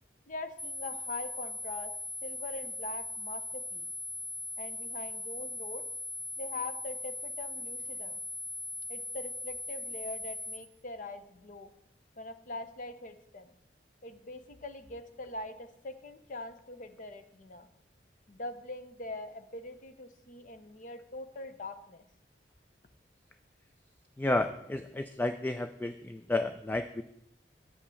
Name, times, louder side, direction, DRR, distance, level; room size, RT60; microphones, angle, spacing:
voice 1, 0.3-1.9 2.2-3.9 4.6-5.8 6.4-8.2 8.9-11.7 12.2-13.5 14.0-17.7 18.3-22.1, left 2 dB, 45° left, 9 dB, 0.7 m, -42 dB
sound 1, 0.6-10.6, left 2 dB, 65° left, 2.3 m, -39 dB
voice 2, 24.2-27.0, left 2 dB, 10° left, 8 dB, 0.3 m, -31 dB
8.1 x 5.3 x 6.9 m, 0.76 s
head